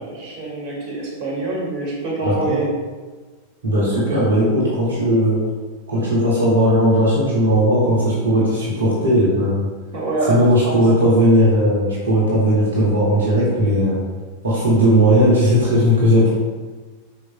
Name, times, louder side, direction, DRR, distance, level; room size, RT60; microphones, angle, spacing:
voice 1, 0.0-2.7 3.9-4.2 9.9-10.8, right 2 dB, 45° right, -3 dB, 2.2 m, -25 dB
voice 2, 2.2-2.6 3.6-5.4 5.9-9.7 10.3-14.0 14.4-16.3, equal, 70° right, -6 dB, 1.9 m, -17 dB
11.0 x 5.1 x 2.2 m, 1.4 s
figure-of-eight pair, 90°, 0 cm